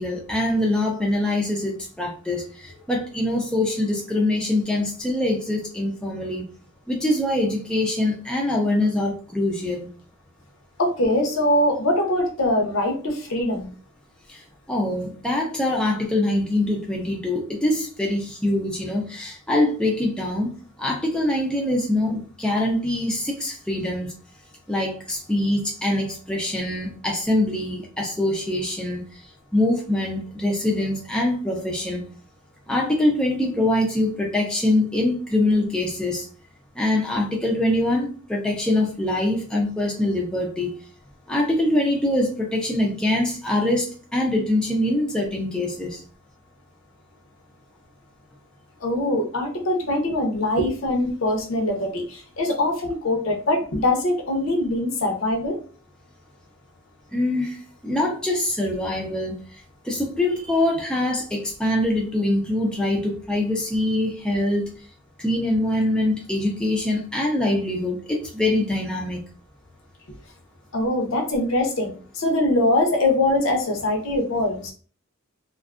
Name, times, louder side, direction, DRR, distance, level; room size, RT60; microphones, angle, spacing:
voice 1, 0.0-6.4 6.9-9.9 14.3-14.4 14.7-20.5 20.8-24.1 24.7-29.0 29.5-32.0 32.7-36.2 36.8-40.7 41.3-46.0 57.1-59.3 59.8-64.7 65.2-69.2, left 1 dB, 5° left, 0.4 m, -24 dB
voice 2, 10.8-13.7 48.8-55.6 70.7-74.7, left 1 dB, 70° left, 0.7 m, -23 dB
2.5 x 2.3 x 2.4 m
head